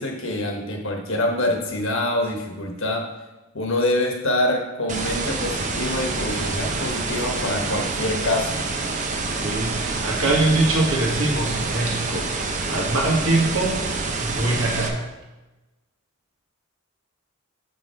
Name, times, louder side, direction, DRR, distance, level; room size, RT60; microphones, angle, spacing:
voice 1, 0.0-3.0 3.5-8.6, left 1 dB, 60° left, 2 dB, 1.4 m, -25 dB
sound 1, 4.9-14.9, right 3 dB, 35° right, 0.7 m, -27 dB
voice 2, 9.4-13.8 14.2-15.1, right 2 dB, 70° right, -1 dB, 1.7 m, -23 dB
6.7 x 5.8 x 4.5 m, 1.1 s
head